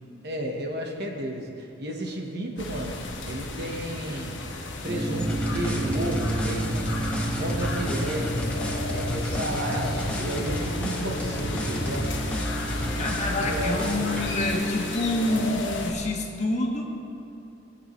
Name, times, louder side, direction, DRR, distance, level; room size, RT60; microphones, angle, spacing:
voice 1, 0.2-4.4 4.8-7.0 7.4-8.4 8.9-12.1 13.1-14.3, right 1 dB, 60° right, 1 dB, 1.4 m, -33 dB
sound 1, 2.6-15.9, left 2 dB, 70° left, 1.4 m, -34 dB
sound 2, 4.9-15.5, right 2 dB, 15° right, 2.0 m, -34 dB
sound 3, 5.2-14.3, equal, 5° left, 1.2 m, -31 dB
voice 2, 12.9-16.8, left 2 dB, 40° left, 0 dB, 1.5 m, -27 dB
19.5 x 8.4 x 3.2 m, 2.8 s
head